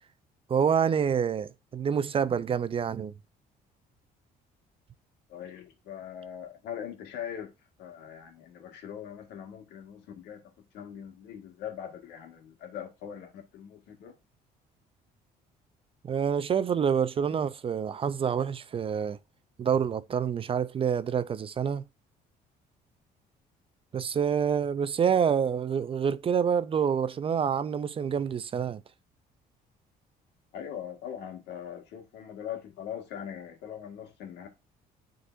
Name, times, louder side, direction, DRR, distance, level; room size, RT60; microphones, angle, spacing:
voice 1, 0.5-3.1 16.1-19.2 19.6-21.8 23.9-28.8, right 7 dB, 35° right, 0.4 m, -27 dB
voice 2, 5.3-7.5 7.8-14.1 30.5-34.5, left 9 dB, 80° left, 1.8 m, -41 dB
9.8 x 3.9 x 2.6 m
cardioid pair, 110°, 17 cm